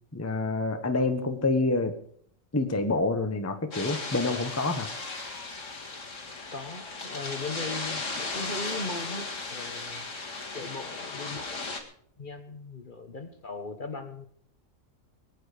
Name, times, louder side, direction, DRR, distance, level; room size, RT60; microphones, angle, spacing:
voice 1, 0.1-1.9 2.5-4.9, left 3 dB, 15° left, 6 dB, 1.0 m, -27 dB
sound 1, 3.7-11.8, left 3 dB, 75° left, 2.4 m, -36 dB
voice 2, 6.5-10.1 10.5-11.6 12.2-14.3, left 3 dB, 40° left, 8 dB, 1.3 m, -38 dB
23.0 x 9.0 x 5.0 m, 0.62 s
omnidirectional pair, 1.3 m